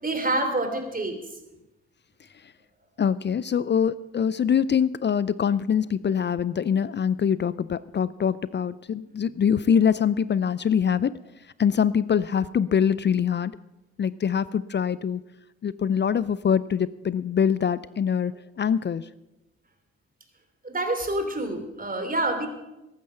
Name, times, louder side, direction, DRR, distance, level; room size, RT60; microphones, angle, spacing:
voice 1, 0.0-1.2 20.6-22.5, right 2 dB, 25° right, 7 dB, 3.2 m, -27 dB
voice 2, 3.0-11.2 11.6-13.5 14.0-15.2 15.6-19.1, left 7 dB, 35° left, 18 dB, 0.5 m, -24 dB
14.5 x 11.5 x 5.7 m, 0.96 s
hypercardioid pair, 45°, 32 cm